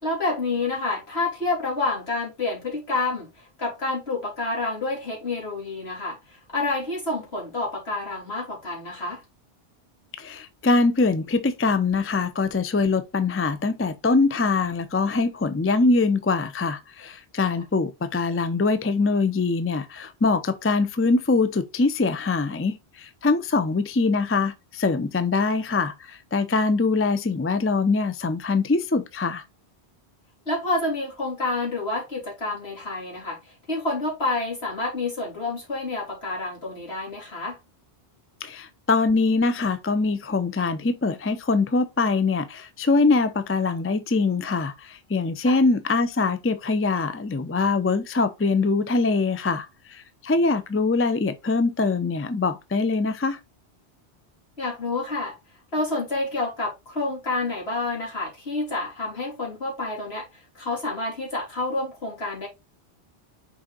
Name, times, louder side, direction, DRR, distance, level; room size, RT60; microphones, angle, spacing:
voice 1, 0.0-9.2 30.5-37.6 45.4-45.6 54.6-55.4 55.7-62.5, left 2 dB, 70° left, 3.4 m, -28 dB
voice 2, 10.2-29.4 38.4-53.4, left 3 dB, 20° left, 0.4 m, -23 dB
6.2 x 4.4 x 3.9 m
omnidirectional pair, 1.1 m